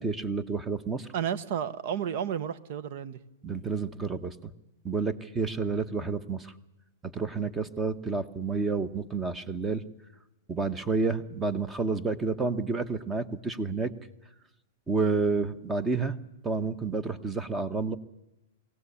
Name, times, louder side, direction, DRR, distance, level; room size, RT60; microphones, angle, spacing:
voice 1, 0.0-1.1 3.4-4.5 4.8-6.5 7.0-9.8 10.5-13.9 14.9-16.2 16.4-18.0, right 4 dB, 15° right, 15 dB, 1.1 m, -30 dB
voice 2, 1.1-3.2, right 8 dB, 55° right, 16 dB, 1.2 m, -32 dB
22.5 x 17.0 x 8.5 m, 0.94 s
hypercardioid pair, 140°, 0 cm